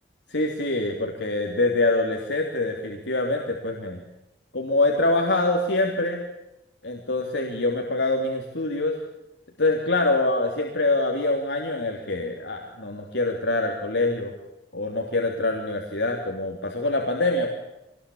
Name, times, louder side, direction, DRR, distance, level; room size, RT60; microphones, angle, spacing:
voice 1, 0.3-4.0 4.5-6.2 6.8-9.0 9.6-14.3 14.7-17.5, left 2 dB, 75° left, 1 dB, 3.2 m, -25 dB
25.0 x 20.5 x 8.6 m, 0.92 s
head